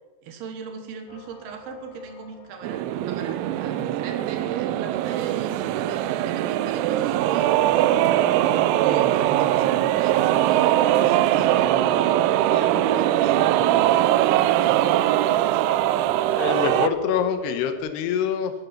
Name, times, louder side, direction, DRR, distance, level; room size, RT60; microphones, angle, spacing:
voice 1, 0.2-15.1, right 6 dB, 65° right, 6 dB, 2.7 m, -39 dB
sound 1, 1.1-4.5 5.7-17.8, left 1 dB, 50° left, 4.8 m, -41 dB
sound 2, 2.6-16.9, right 13 dB, 85° right, 3.3 m, -21 dB
voice 2, 16.3-18.5, left 8 dB, 75° left, 8 dB, 2.5 m, -25 dB
15.0 x 11.0 x 5.9 m, 1.3 s
omnidirectional pair, 6.0 m